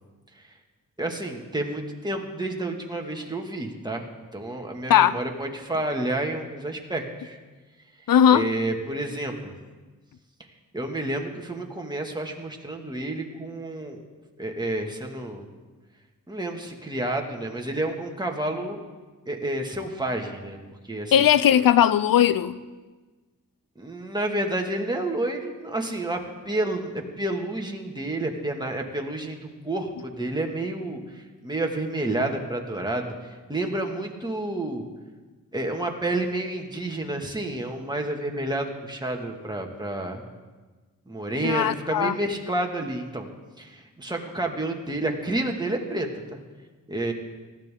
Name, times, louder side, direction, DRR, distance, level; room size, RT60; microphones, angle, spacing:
voice 1, 1.0-4.1 4.3-7.4 8.3-9.5 10.7-14.1 14.4-15.4 16.3-18.8 19.3-20.6 20.8-21.3 23.8-33.1 33.5-34.9 35.5-40.2 41.1-43.3 43.6-46.4 46.9-47.1, right 1 dB, 10° right, 2.1 m, -30 dB
voice 2, 8.1-8.5 21.1-22.6 41.4-42.1, left 9 dB, 90° left, 0.6 m, -18 dB
19.0 x 14.5 x 3.8 m
cardioid pair, 75°, 33 cm